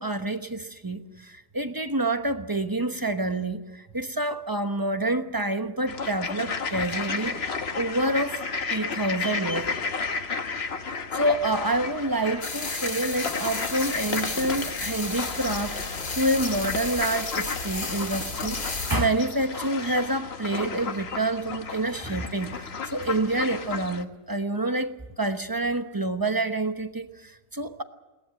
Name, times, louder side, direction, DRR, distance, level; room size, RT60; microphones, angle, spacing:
voice 1, 0.0-8.4 8.7-9.7 11.1-27.8, right 2 dB, 15° right, 8 dB, 0.8 m, -28 dB
sound 1, 5.9-24.0, left 5 dB, 45° left, 1.3 m, -33 dB
sound 2, 12.4-19.0, left 3 dB, 85° left, 3.4 m, -33 dB
21.5 x 18.0 x 9.1 m, 1.1 s
omnidirectional pair, 1.7 m